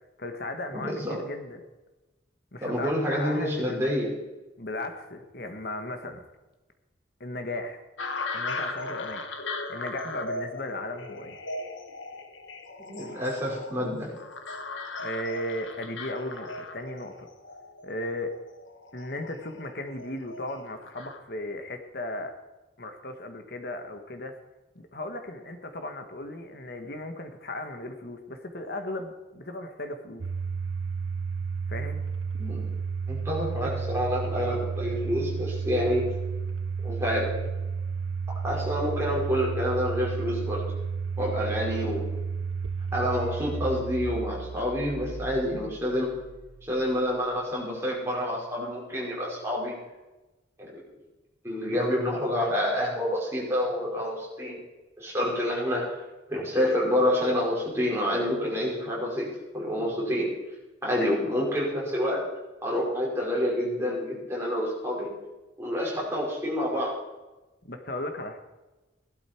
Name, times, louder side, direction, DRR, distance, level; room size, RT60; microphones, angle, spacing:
voice 1, 0.2-1.6 2.5-3.8 4.6-6.2 7.2-7.8 8.3-11.4 15.0-17.3 17.8-18.3 18.9-22.3 22.8-24.4 24.7-30.3 31.7-32.0 61.0-61.3 67.6-68.4, left 1 dB, 50° left, 6 dB, 1.6 m, -36 dB
voice 2, 0.7-1.2 2.6-4.1 12.8-14.1 32.4-32.7 33.1-36.0 36.8-37.3 38.4-40.6 41.2-42.1 42.9-46.1 46.6-49.8 50.6-50.8 51.4-54.6 55.0-56.0 56.3-60.3 60.8-62.3 62.6-65.1 65.6-66.9, equal, 15° right, -4 dB, 5.2 m, -28 dB
sound 1, 8.0-21.2, left 3 dB, 75° left, 1.5 m, -38 dB
Domestic sounds home sounds, 30.2-47.1, right 5 dB, 75° right, 0.6 m, -32 dB
17.0 x 12.0 x 4.6 m, 1.1 s
head